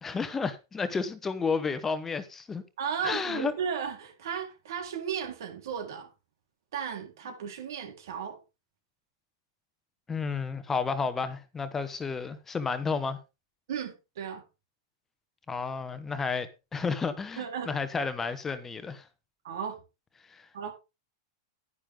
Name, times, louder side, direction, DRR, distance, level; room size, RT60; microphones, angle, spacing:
voice 1, 0.0-2.6 3.0-3.5 10.1-13.2 15.5-19.1 20.3-20.5, left 5 dB, 15° left, 1.1 m, -31 dB
voice 2, 2.8-6.1 6.7-8.4 13.7-14.4 17.4-17.7 19.4-19.8 20.5-20.7, right 7 dB, 75° right, 4.0 m, -35 dB
11.0 x 10.5 x 3.7 m
supercardioid pair, 145°, 2 cm